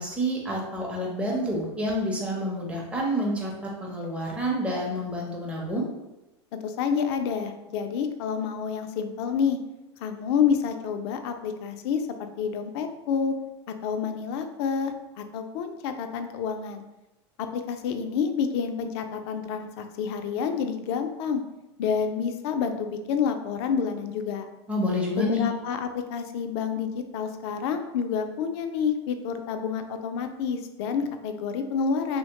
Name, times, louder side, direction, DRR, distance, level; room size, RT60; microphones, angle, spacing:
voice 1, 0.0-5.9 24.7-25.4, equal, 10° right, -3 dB, 0.7 m, -28 dB
voice 2, 6.5-9.6 10.0-13.3 13.8-16.8 17.4-21.4 21.8-24.5 25.2-32.2, left 6 dB, 65° left, 7 dB, 0.4 m, -28 dB
2.9 x 2.1 x 2.9 m, 0.97 s
hypercardioid pair, 105°, 15 cm